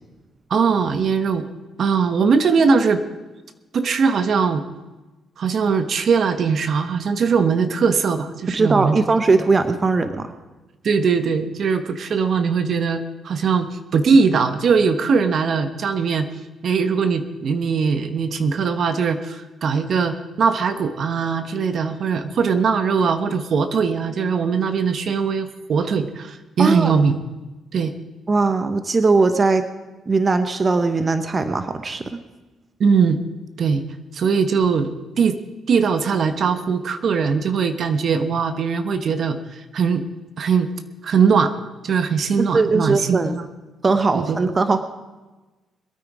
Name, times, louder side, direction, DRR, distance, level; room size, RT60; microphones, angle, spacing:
voice 1, 0.5-1.4 1.8-3.0 3.7-4.6 5.4-9.1 10.8-16.3 16.6-27.2 27.7-27.9 32.8-33.2 33.6-33.9 34.1-35.4 35.7-40.0 40.4-40.7 41.0-41.5 41.8-43.5 44.1-44.4, right 5 dB, 55° right, 9 dB, 1.1 m, -20 dB
voice 2, 8.5-10.3 26.6-26.9 28.3-29.7 30.1-32.2 42.5-43.3 43.8-44.8, right 3 dB, 35° right, 9 dB, 1.0 m, -19 dB
22.0 x 9.0 x 4.9 m, 1.2 s
cardioid pair, 90°, 0 cm